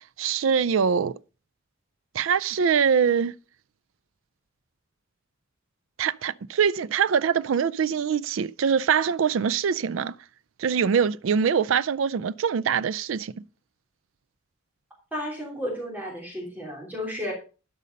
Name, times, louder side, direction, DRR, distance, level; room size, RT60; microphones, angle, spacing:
voice 1, 0.2-1.1 2.1-3.3 6.0-10.1 10.6-13.3, right 7 dB, 70° right, 0.4 m, -23 dB
voice 2, 15.1-17.3, left 1 dB, 10° right, 3.0 m, -33 dB
12.5 x 5.4 x 5.2 m
head